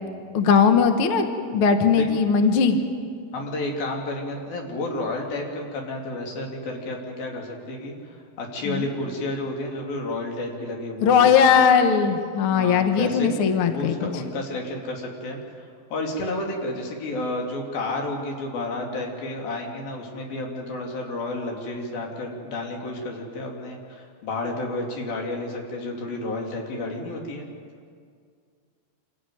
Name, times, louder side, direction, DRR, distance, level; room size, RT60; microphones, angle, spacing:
voice 1, 0.3-1.3 1.5-2.8 8.6-8.9 11.0-14.1, left 6 dB, 55° left, 6 dB, 1.6 m, -19 dB
voice 2, 3.3-11.3 12.5-27.5, left 2 dB, 75° left, 1 dB, 4.5 m, -31 dB
27.0 x 15.0 x 9.3 m, 2.2 s
omnidirectional pair, 4.2 m